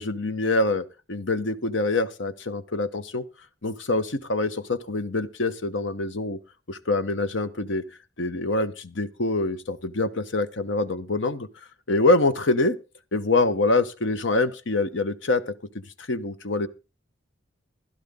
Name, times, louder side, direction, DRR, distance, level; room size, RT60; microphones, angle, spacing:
voice 1, 0.0-3.2 3.6-6.4 6.7-7.8 8.2-11.5 11.9-12.8 13.1-15.6 16.1-16.7, left 2 dB, 75° left, 12 dB, 1.1 m, -25 dB
16.0 x 12.0 x 3.6 m, 0.30 s
head